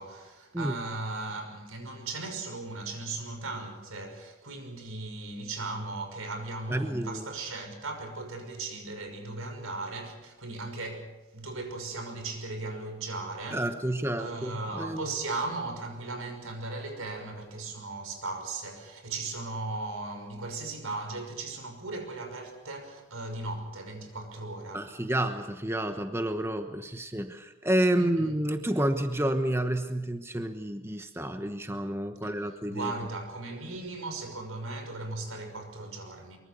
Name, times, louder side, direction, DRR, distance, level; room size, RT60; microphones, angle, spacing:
voice 1, 0.0-13.7 14.2-24.9 28.0-28.4 32.2-32.3 32.7-36.4, right 2 dB, 85° right, 5.9 m, -37 dB
voice 2, 6.7-7.3 13.5-15.1 24.7-32.9, right 1 dB, 10° right, 1.1 m, -30 dB
23.5 x 23.5 x 6.9 m
head